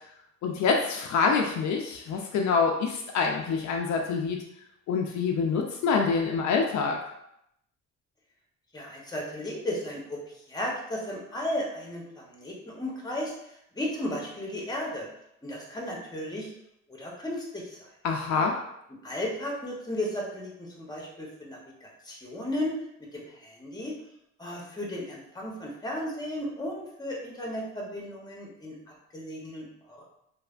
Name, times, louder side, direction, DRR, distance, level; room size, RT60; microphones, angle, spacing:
voice 1, 0.4-4.4 4.9-7.0 18.0-18.6, left 5 dB, 70° left, 2 dB, 0.4 m, -26 dB
voice 2, 8.7-15.1 15.4-16.5 16.9-17.9 19.0-23.9 24.4-30.0, left 1 dB, 15° left, -3 dB, 0.8 m, -35 dB
3.1 x 2.0 x 2.4 m, 0.77 s
cardioid pair, 90°, 30 cm